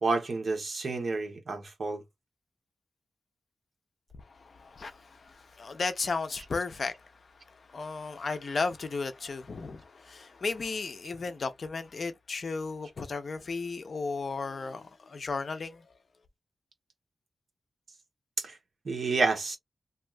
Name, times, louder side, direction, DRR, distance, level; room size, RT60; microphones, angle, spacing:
voice 1, 0.0-2.0 18.4-18.6 18.8-19.6, right 3 dB, 55° right, 1.0 m, -29 dB
voice 2, 4.2-15.9, left 4 dB, 50° left, 0.6 m, -35 dB
2.7 x 2.4 x 3.2 m
wide cardioid pair, 145°, 0 cm